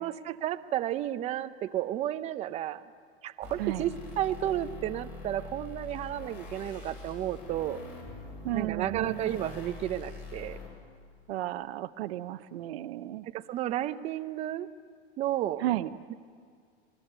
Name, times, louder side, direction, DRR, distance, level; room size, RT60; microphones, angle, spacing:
voice 1, 0.0-2.8 3.2-7.8 8.5-10.6 13.3-14.7 15.2-15.6, right 12 dB, 20° right, 11 dB, 0.6 m, -32 dB
sound 1, 3.4-10.7, left 3 dB, 35° left, 7.7 m, -44 dB
voice 2, 8.4-9.2 11.3-13.3 15.6-15.9, right 15 dB, 70° right, 10 dB, 0.9 m, -33 dB
27.5 x 21.5 x 8.1 m, 2.1 s
supercardioid pair, 160°, 32 cm